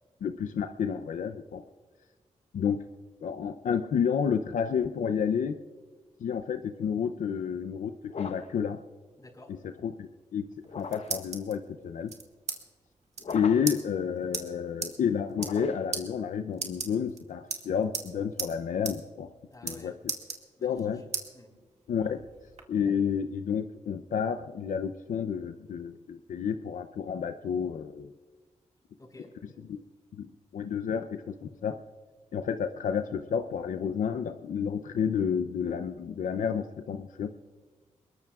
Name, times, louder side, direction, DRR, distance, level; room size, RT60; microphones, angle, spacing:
voice 1, 0.2-1.6 2.5-2.8 3.2-5.6 6.2-8.8 9.8-10.5 10.7-12.1 13.3-19.3 19.6-19.9 20.6-21.0 21.9-22.2 22.7-28.1 29.7-29.8 30.2-31.8 32.3-37.3, left 7 dB, 85° left, 8 dB, 0.6 m, -30 dB
sound 1, 8.1-8.6 10.6-11.3 13.2-13.9 15.3-16.0, left 5 dB, 55° left, 0.9 m, -40 dB
voice 2, 9.2-9.5 19.5-20.0 20.6-21.0 21.3-21.6 29.0-29.4, left 1 dB, 30° left, 2 dB, 4.7 m, -51 dB
sound 2, 10.5-11.5 12.1-12.6 12.9-13.0 13.1-13.3 13.7-13.8 14.3-14.4 14.8-14.9 15.3-15.6 15.9-16.0 16.5-17.2 17.5-18.1 18.4-18.5 18.8-19.0 19.2-19.8 20.1-20.8 21.1-21.3 21.8-22.6, right 4 dB, 60° right, 2.0 m, -35 dB
23.5 x 21.0 x 2.4 m, 1.4 s
cardioid pair, 75°, 13 cm